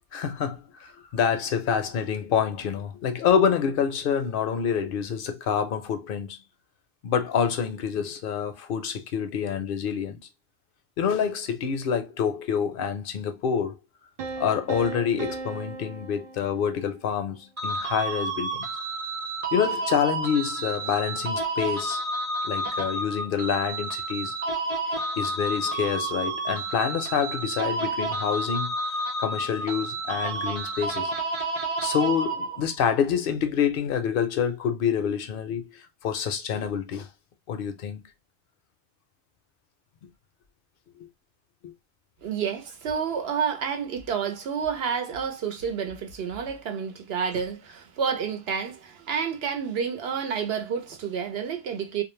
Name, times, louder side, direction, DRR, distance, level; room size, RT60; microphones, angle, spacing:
voice 1, 0.1-6.4 7.0-10.2 11.0-13.8 14.4-18.6 19.5-22.0 22.4-24.3 24.9-28.7 29.2-31.1 31.8-37.1 37.5-38.0 41.6-41.7, left 7 dB, 65° left, 0.7 m, -27 dB
sound 1, 14.2-17.1, right 4 dB, 55° right, 0.5 m, -37 dB
sound 2, 17.6-32.8, right 2 dB, 35° right, 0.9 m, -30 dB
voice 2, 42.2-52.0, right 7 dB, 75° right, 0.9 m, -29 dB
2.2 x 2.0 x 3.0 m
omnidirectional pair, 1.1 m